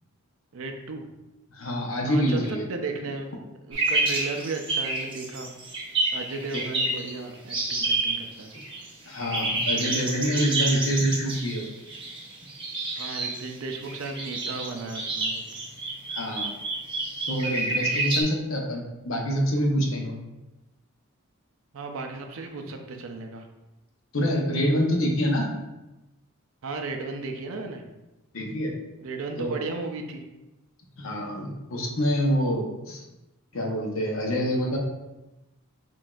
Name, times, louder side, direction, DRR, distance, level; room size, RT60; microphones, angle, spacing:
voice 1, 0.5-1.1 2.0-3.3 3.7-5.5 6.1-8.5 13.0-15.6 21.7-23.5 26.6-27.8 29.0-30.2, right 3 dB, 65° right, 4 dB, 0.5 m, -35 dB
voice 2, 1.5-2.6 6.5-6.6 9.1-11.7 16.1-16.5 17.3-20.2 24.1-25.5 28.3-28.7 29.4-29.5 31.0-33.0 33.5-34.8, equal, 60° left, 0 dB, 0.8 m, -26 dB
sound 1, 3.7-7.1 7.5-8.9 9.1-18.2, right 2 dB, 20° right, 0.8 m, -29 dB
5.9 x 2.6 x 2.3 m, 1.0 s
head